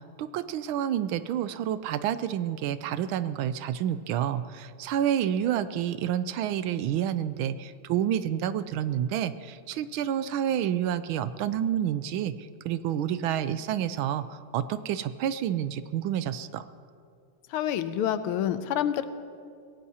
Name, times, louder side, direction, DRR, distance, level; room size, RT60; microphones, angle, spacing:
voice 1, 0.2-12.3 12.6-14.2 14.5-16.6, right 10 dB, 75° right, 13 dB, 1.3 m, -29 dB
voice 2, 17.5-19.1, left 10 dB, 90° left, 11 dB, 1.6 m, -27 dB
24.5 x 17.0 x 2.8 m, 2.3 s
omnidirectional pair, 2.4 m